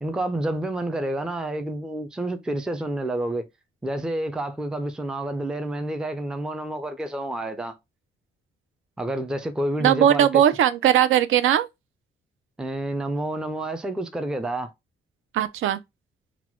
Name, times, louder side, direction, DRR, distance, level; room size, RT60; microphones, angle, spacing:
voice 1, 0.0-3.5 3.8-7.8 9.0-10.4 12.6-14.7, right 1 dB, 5° right, 0.4 m, -29 dB
voice 2, 9.8-11.7 15.3-15.8, right 10 dB, 80° right, 0.5 m, -19 dB
4.0 x 2.2 x 4.3 m
wide cardioid pair, 170°, 20 cm